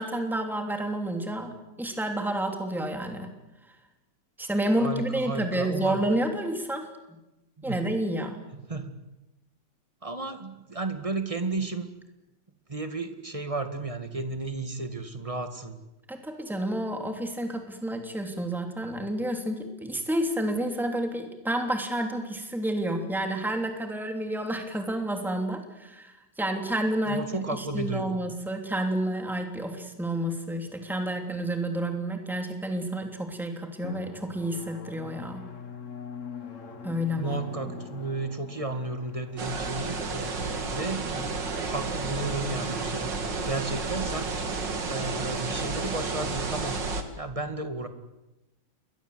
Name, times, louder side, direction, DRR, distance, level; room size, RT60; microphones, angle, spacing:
voice 1, 0.0-1.5 1.8-3.3 4.4-7.2 7.6-8.4 16.1-35.4 36.8-37.4, right 1 dB, ahead, 4 dB, 3.0 m, -30 dB
voice 2, 4.8-6.0 7.6-7.8 8.7-9.0 10.0-11.9 12.7-15.8 27.1-28.2 37.2-41.3 41.6-43.1 43.5-44.4 44.9-46.8 47.2-47.9, right 3 dB, 20° right, 8 dB, 2.1 m, -33 dB
Drum, 33.8-43.1, left 5 dB, 45° left, 1.9 m, -44 dB
sound 1, 39.4-47.0, right 3 dB, 80° right, 3.0 m, -31 dB
28.5 x 22.5 x 8.0 m, 1.0 s
omnidirectional pair, 1.9 m